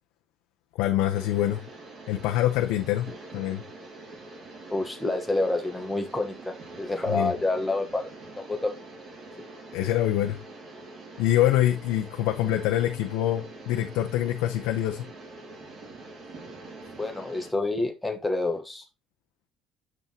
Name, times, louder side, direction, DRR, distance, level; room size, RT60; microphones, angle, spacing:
voice 1, 0.8-1.6 2.1-3.6 7.1-7.3 9.7-10.4 11.2-15.1, left 13 dB, 85° left, 0.7 m, -25 dB
sound 1, 1.1-17.5, right 2 dB, 40° right, 2.2 m, -45 dB
voice 2, 4.7-8.1 8.4-8.7 17.0-18.8, left 2 dB, 5° left, 1.2 m, -28 dB
7.3 x 5.8 x 2.9 m
cardioid pair, 155°, 0 cm